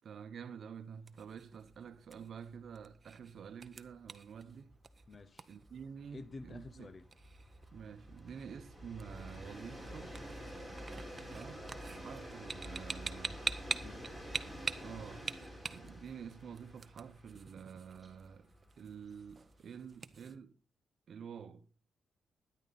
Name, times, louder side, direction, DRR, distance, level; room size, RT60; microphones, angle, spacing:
voice 1, 0.0-4.7 5.5-6.9 7.7-10.2 11.3-13.4 14.8-15.3 15.7-18.5 18.8-20.5 21.1-21.7, right 7 dB, 55° right, 1.0 m, -49 dB
sound 1, 0.7-20.4, right 4 dB, 30° right, 0.8 m, -46 dB
Train, 1.7-1.8 2.1-2.2 2.5-19.9, equal, 10° left, 4.0 m, -49 dB
voice 2, 5.1-5.5 6.1-7.1 13.6-14.2, left 3 dB, 35° left, 0.9 m, -50 dB
13.0 x 10.5 x 4.2 m
cardioid pair, 105°, 0 cm